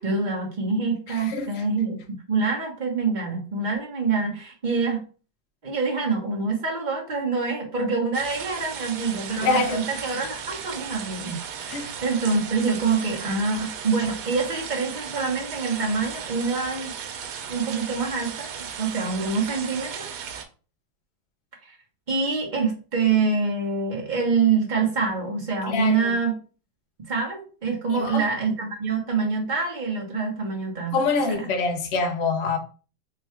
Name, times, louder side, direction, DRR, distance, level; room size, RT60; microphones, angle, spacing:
voice 1, 0.0-2.0 2.3-5.0 5.6-16.9 17.5-20.1 21.7-21.8 22.1-26.4 27.1-31.0 31.3-31.5, right 4 dB, 35° right, 0.8 m, -26 dB
voice 2, 1.1-1.6 9.4-9.8 11.7-11.9 25.7-26.1 27.9-28.2 30.9-32.6, left 4 dB, 70° left, 0.6 m, -25 dB
sound 1, 8.1-20.4, right 7 dB, 85° right, 1.5 m, -36 dB
3.8 x 2.3 x 4.4 m
omnidirectional pair, 2.2 m